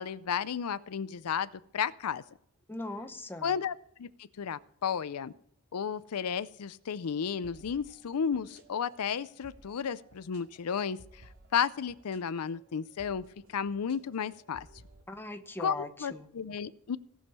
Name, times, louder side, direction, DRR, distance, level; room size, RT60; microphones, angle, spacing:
voice 1, 0.0-2.2 3.4-5.3 5.7-14.7 15.6-17.0, left 7 dB, 80° left, 15 dB, 0.5 m, -33 dB
voice 2, 2.7-3.6 15.1-16.3, left 2 dB, 10° left, 7 dB, 0.8 m, -40 dB
sound 1, 7.1-15.0, right 2 dB, 65° right, 2.1 m, -58 dB
17.5 x 6.4 x 5.5 m, 0.70 s
head